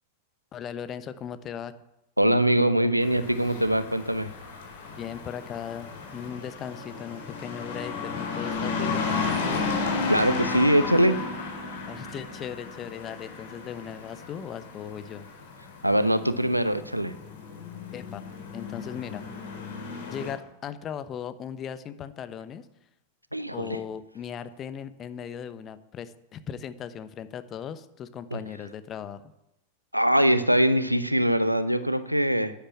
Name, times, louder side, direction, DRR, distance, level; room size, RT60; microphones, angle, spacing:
voice 1, 0.5-1.7 5.0-9.7 11.8-15.3 17.9-18.2 18.5-19.3 20.0-22.7 23.5-29.2, left 8 dB, 30° left, 12 dB, 1.0 m, -38 dB
voice 2, 2.2-4.3 10.1-11.2 15.8-17.1 23.3-23.8 28.3-28.4 29.9-32.5, right 1 dB, 90° right, 13 dB, 0.9 m, -22 dB
sound 1, 3.0-20.3, left 4 dB, 60° left, 4.3 m, -34 dB
11.5 x 10.5 x 8.6 m, 0.90 s
figure-of-eight pair, 90°, 0 cm